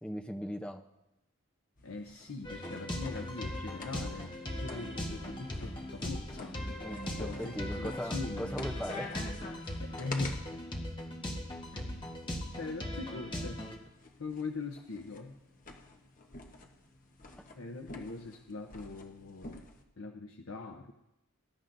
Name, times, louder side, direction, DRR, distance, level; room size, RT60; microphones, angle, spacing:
voice 1, 0.0-0.8 6.8-9.1, equal, 5° left, 5 dB, 0.6 m, -39 dB
voice 2, 1.8-6.6 7.2-8.5 9.8-10.4 11.7-11.8 12.6-13.6 14.2-15.4 17.5-19.6 20.0-20.9, left 3 dB, 65° left, 4 dB, 0.7 m, -41 dB
sound 1, 1.8-10.4 11.6-19.8, left 3 dB, 40° left, 1.0 m, -49 dB
sound 2, 2.4-13.8, left 1 dB, 20° left, 1.3 m, -39 dB
19.5 x 11.0 x 2.6 m, 0.92 s
head